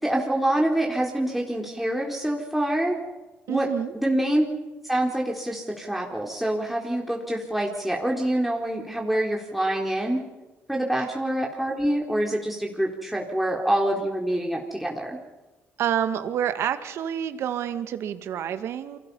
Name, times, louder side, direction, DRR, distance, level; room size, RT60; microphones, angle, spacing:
voice 1, 0.0-3.0 3.5-3.7 3.9-4.4 4.8-10.2 10.7-15.2, right 1 dB, 5° right, -1 dB, 3.8 m, -26 dB
voice 2, 3.5-3.9 15.8-19.0, right 9 dB, 70° right, 10 dB, 1.9 m, -28 dB
29.5 x 23.5 x 5.6 m, 1.1 s
supercardioid pair, 75°, 5 cm